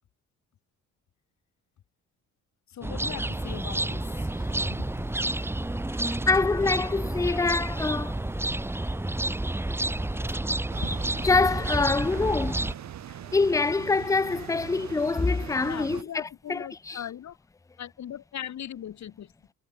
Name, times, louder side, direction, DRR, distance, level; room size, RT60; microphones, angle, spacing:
voice 1, 2.7-5.1 10.8-11.2 15.6-17.4 17.8-19.3, left 10 dB, 65° left, 5.5 m, -40 dB
sound 1, 2.8-12.7, right 1 dB, 10° right, 1.1 m, -30 dB
sound 2, 3.2-10.4, left 4 dB, 25° left, 5.1 m, -48 dB
voice 2, 6.3-8.2 9.9-10.1 11.2-12.7 13.3-17.0, left 4 dB, 10° left, 0.6 m, -25 dB
sound 3, 10.7-16.0, right 10 dB, 65° right, 2.8 m, -41 dB
cardioid pair, 90°, 30 cm